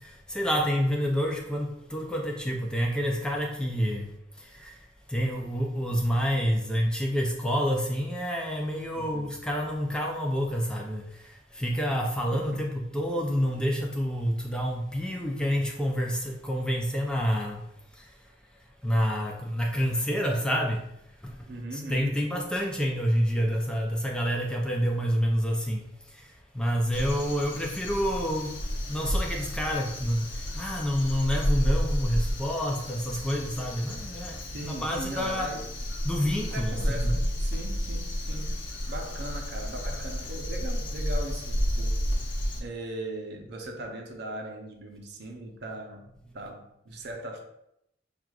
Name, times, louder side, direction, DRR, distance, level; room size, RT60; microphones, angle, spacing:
voice 1, 0.0-17.7 17.9-18.2 18.8-20.9 21.2-28.6 28.9-35.5 36.0-37.2, equal, 5° left, 0 dB, 0.4 m, -28 dB
voice 2, 8.9-9.3 12.3-12.6 21.5-22.3 34.5-35.7 36.5-42.0 42.6-46.0 46.3-47.4, right 1 dB, 60° right, 3 dB, 0.6 m, -39 dB
Crow, 26.9-42.6, equal, 70° left, 0.7 m, -31 dB
6.1 x 2.4 x 2.3 m, 0.79 s
head